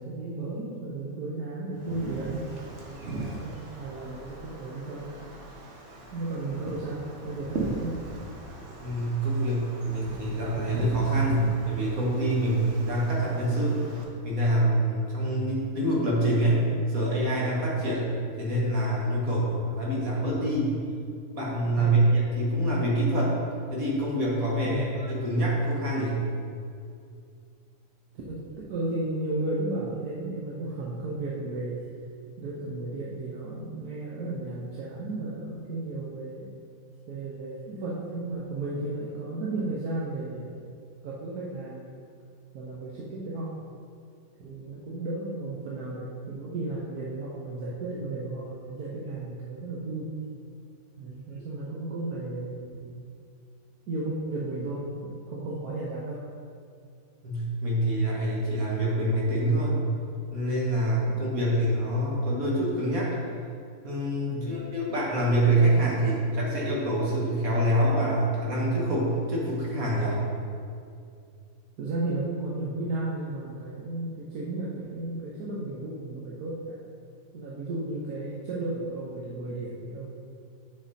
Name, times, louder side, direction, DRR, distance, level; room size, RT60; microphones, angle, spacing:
voice 1, 0.0-2.5 2.9-5.1 6.1-8.0 19.2-19.7 21.8-22.3 24.6-25.0 28.3-31.8 32.4-36.5 37.1-40.6 41.0-41.8 42.5-43.5 44.4-50.1 51.0-53.0 53.9-56.2 64.3-64.6 71.8-76.8 77.3-80.1, right 2 dB, 85° right, -5 dB, 1.4 m, -34 dB
Wind, 1.7-14.0, right 2 dB, 55° right, 1.3 m, -39 dB
voice 2, 8.8-13.8 14.2-16.6 16.9-18.1 18.4-20.8 21.3-23.4 23.7-26.2 57.2-59.9 60.3-63.1 63.8-70.2, right 1 dB, 70° right, -5 dB, 2.1 m, -26 dB
7.3 x 6.5 x 4.2 m, 2.3 s
omnidirectional pair, 1.6 m